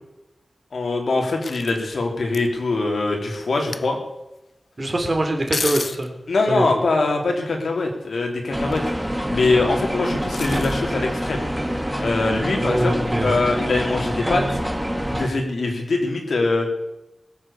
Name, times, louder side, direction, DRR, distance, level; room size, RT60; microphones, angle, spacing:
voice 1, 0.7-4.0 6.3-8.8 9.1-11.5 12.0-12.9 13.2-14.4 15.0-16.7, left 3 dB, 85° left, 2 dB, 3.3 m, -22 dB
sound 1, 1.4-2.5 3.3-4.0 5.4-6.1 8.5-9.1 10.3-10.8 12.4-12.5, left 4 dB, 65° left, 0.7 m, -31 dB
voice 2, 4.8-6.1 6.5-6.7 12.5-13.3, right 1 dB, 35° right, 3 dB, 3.5 m, -23 dB
sound 2, 8.5-15.3, equal, 5° right, 1.6 m, -26 dB
21.0 x 8.0 x 7.0 m, 0.93 s
wide cardioid pair, 90°, 0 cm